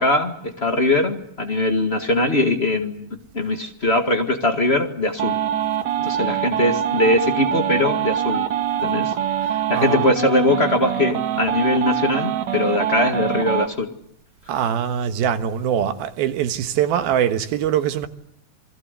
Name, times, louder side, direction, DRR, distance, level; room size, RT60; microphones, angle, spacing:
voice 1, 0.0-3.1 3.3-5.4 6.0-8.5 8.8-9.1 9.4-13.9, left 2 dB, 35° left, 1.0 m, -21 dB
sound 1, 5.2-13.7, right 10 dB, 60° right, 2.4 m, -24 dB
voice 2, 9.7-10.1 14.5-18.1, right 9 dB, 90° right, 3.2 m, -22 dB
28.0 x 21.5 x 8.2 m
omnidirectional pair, 4.2 m